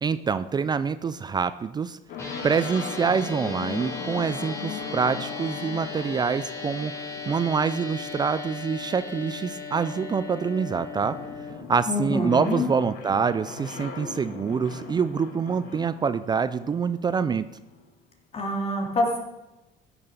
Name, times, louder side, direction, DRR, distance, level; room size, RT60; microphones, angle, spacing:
voice 1, 0.0-2.0 2.4-11.2 11.7-17.6, right 6 dB, 30° right, 14 dB, 0.4 m, -26 dB
sound 1, 2.1-17.9, left 5 dB, 75° left, 2.0 m, -40 dB
sound 2, 2.2-11.5, left 4 dB, 20° left, 3.8 m, -37 dB
voice 2, 11.9-12.7 18.3-19.2, left 2 dB, 40° left, 1 dB, 3.4 m, -26 dB
14.5 x 7.0 x 6.9 m, 1.0 s
cardioid pair, 110°, 15 cm